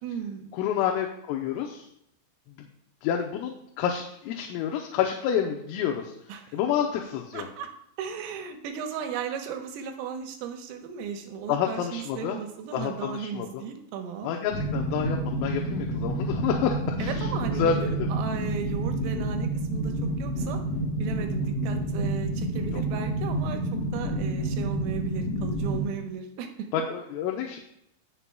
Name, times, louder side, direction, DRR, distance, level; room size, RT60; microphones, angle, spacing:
voice 1, 0.0-0.5 6.3-6.6 7.3-7.7 8.0-14.3 17.0-20.6 21.0-26.7, right 7 dB, 90° right, 5 dB, 3.6 m, -36 dB
voice 2, 0.6-1.8 3.0-6.1 6.5-7.5 11.5-12.4 12.7-13.6 14.2-17.3 17.5-18.1 22.7-22.8 26.7-27.6, left 8 dB, 90° left, 1 dB, 3.4 m, -29 dB
sound 1, 14.5-25.8, right 1 dB, 15° left, 3.9 m, -29 dB
18.5 x 6.9 x 2.3 m, 0.76 s
omnidirectional pair, 5.8 m